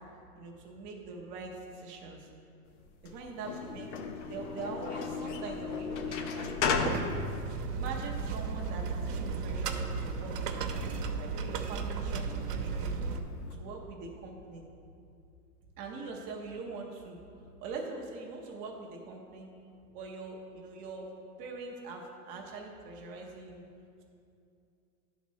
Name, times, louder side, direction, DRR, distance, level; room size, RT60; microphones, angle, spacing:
voice 1, 0.4-2.3 3.0-7.0 7.7-10.6 11.2-13.0 13.6-14.7 15.8-17.2 17.6-19.5 19.9-21.1 21.4-23.6, right 3 dB, 20° right, 0 dB, 0.5 m, -43 dB
sound 1, 2.8-13.5, left 5 dB, 50° left, 0.7 m, -37 dB
sound 2, 6.7-13.2, right 5 dB, 85° right, 0.9 m, -35 dB
10.5 x 4.1 x 6.3 m, 2.5 s
supercardioid pair, 155°, 47 cm